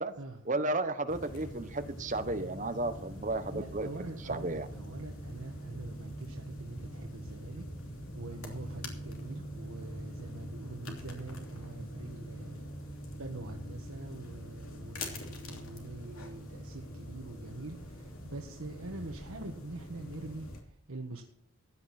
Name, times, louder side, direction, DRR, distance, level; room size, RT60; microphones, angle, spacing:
voice 1, 0.4-3.9 4.2-4.6, right 2 dB, 35° right, 8 dB, 1.1 m, -33 dB
sound 1, 1.1-20.6, equal, 85° left, 3.0 m, -44 dB
voice 2, 3.5-12.7 13.2-20.5 20.9-21.2, right 2 dB, 85° right, 2 dB, 1.4 m, -44 dB
15.5 x 10.0 x 4.2 m, 0.64 s
head